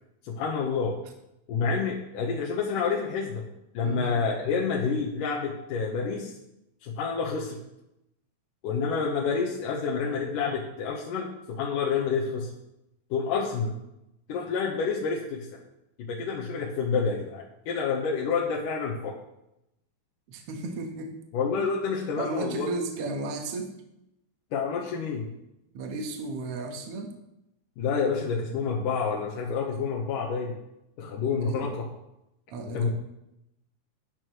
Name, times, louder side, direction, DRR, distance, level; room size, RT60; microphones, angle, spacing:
voice 1, 0.2-0.9 1.5-3.4 3.7-6.3 6.8-7.6 8.6-12.5 13.1-13.7 14.3-15.5 16.1-19.2 21.3-22.7 24.5-25.3 27.8-30.5 31.0-31.9 32.7-32.9, left 5 dB, 70° left, -3 dB, 2.4 m, -28 dB
voice 2, 20.3-21.2 21.5-21.7 22.0-23.7 25.7-27.1 31.3-31.7 32.5-32.9, right 2 dB, 70° right, 3 dB, 1.4 m, -34 dB
12.5 x 9.5 x 3.1 m, 0.86 s
omnidirectional pair, 4.5 m